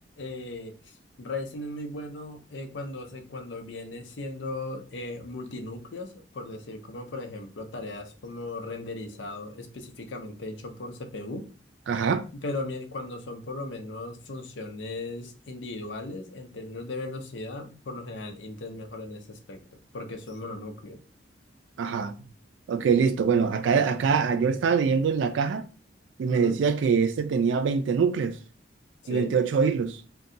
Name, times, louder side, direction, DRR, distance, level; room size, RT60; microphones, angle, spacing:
voice 1, 0.2-11.5 12.3-21.0 26.3-26.6 29.0-29.4, left 2 dB, 75° left, 0.6 m, -37 dB
voice 2, 11.9-12.2 21.8-22.1 22.7-25.6 26.2-28.4 29.1-30.0, right 6 dB, 80° right, 0.3 m, -24 dB
2.6 x 2.2 x 3.8 m
head